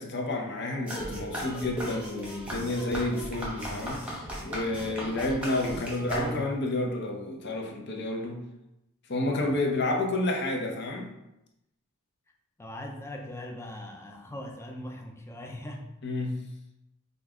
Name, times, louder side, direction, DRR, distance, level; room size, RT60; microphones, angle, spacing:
voice 1, 0.0-8.4 9.1-11.1 16.0-16.4, left 2 dB, 50° left, 1 dB, 0.7 m, -30 dB
sound 1, 0.9-6.7, equal, 5° right, 1.0 m, -36 dB
voice 2, 9.3-9.6 12.6-15.9, left 1 dB, 10° left, 1 dB, 0.5 m, -40 dB
5.3 x 2.4 x 3.6 m, 0.88 s
head